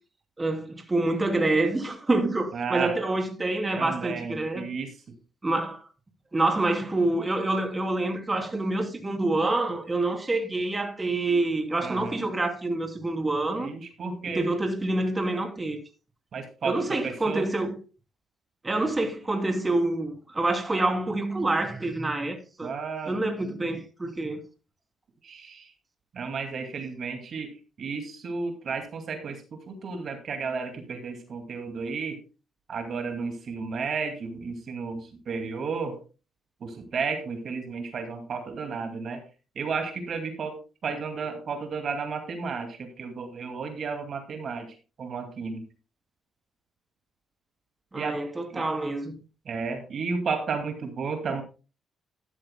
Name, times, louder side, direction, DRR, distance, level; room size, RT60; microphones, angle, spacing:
voice 1, 0.4-4.6 5.4-5.8 6.3-13.7 14.3-15.8 16.6-17.7 18.6-22.7 23.1-24.4 47.9-49.2, right 2 dB, 20° right, 2.8 m, -27 dB
voice 2, 2.5-3.0 3.7-4.9 11.8-12.2 13.5-14.4 16.3-17.5 22.6-23.2 25.2-25.7 26.1-27.5 27.8-32.2 32.7-36.0 36.6-39.2 39.6-40.6 40.8-45.6 47.9-48.2 48.5-48.6 49.5-51.4, right 5 dB, 55° right, 2.3 m, -33 dB
12.0 x 12.0 x 2.2 m
cardioid pair, 90°, 0 cm